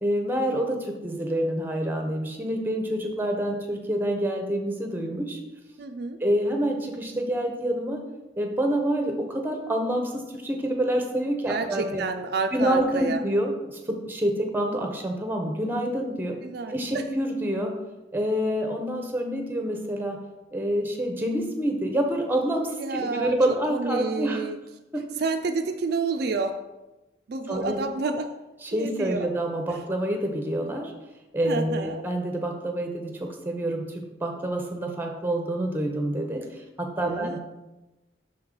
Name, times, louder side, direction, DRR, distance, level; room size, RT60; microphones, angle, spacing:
voice 1, 0.0-5.4 6.2-8.0 8.4-12.0 12.5-16.4 16.7-17.7 18.1-20.2 20.5-24.4 24.9-25.0 27.5-27.8 28.6-30.9 31.3-37.4, right 1 dB, 10° right, 3 dB, 0.7 m, -27 dB
voice 2, 5.8-6.2 11.5-13.2 16.4-17.0 22.8-23.4 23.7-24.6 25.2-26.6 27.3-28.3 28.8-29.3 31.4-32.0 37.0-37.4, right 4 dB, 55° right, 6 dB, 0.3 m, -29 dB
6.2 x 4.7 x 3.8 m, 1.0 s
head